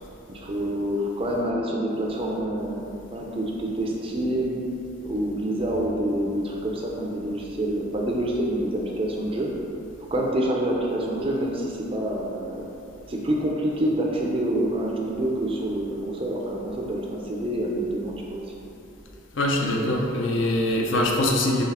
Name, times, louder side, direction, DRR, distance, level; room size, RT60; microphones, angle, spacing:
voice 1, 0.3-2.8 3.1-4.6 5.0-9.5 10.1-12.7 13.1-18.4, right 1 dB, 25° right, -2 dB, 0.4 m, -27 dB
voice 2, 19.4-21.6, left 1 dB, 60° left, 0 dB, 0.5 m, -23 dB
4.1 x 3.1 x 4.1 m, 2.8 s
head